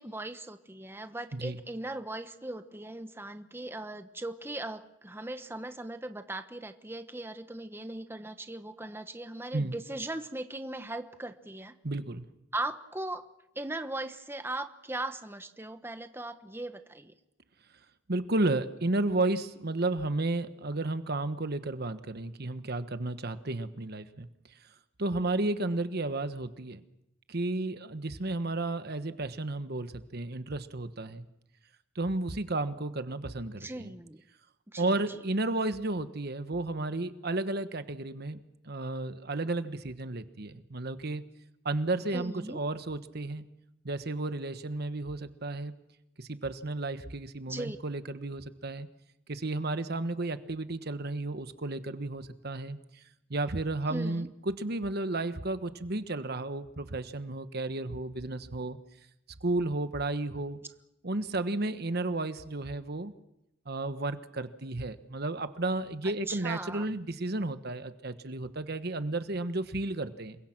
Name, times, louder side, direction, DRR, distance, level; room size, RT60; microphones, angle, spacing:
voice 1, 0.0-11.7 12.5-13.2 13.5-17.1 33.6-34.2 34.7-35.2 42.1-42.6 47.5-47.8 53.9-54.3 66.3-66.9, right 2 dB, 10° right, 8 dB, 1.1 m, -39 dB
voice 2, 11.8-12.3 18.1-24.3 25.0-26.8 27.3-31.2 31.9-33.9 34.8-38.4 38.6-41.2 41.6-43.5 43.8-45.7 46.2-48.9 49.3-52.8 53.3-58.8 59.4-60.6 61.0-63.1 63.7-70.4, right 2 dB, 55° right, 11 dB, 1.3 m, -33 dB
28.0 x 23.0 x 6.0 m, 0.87 s
head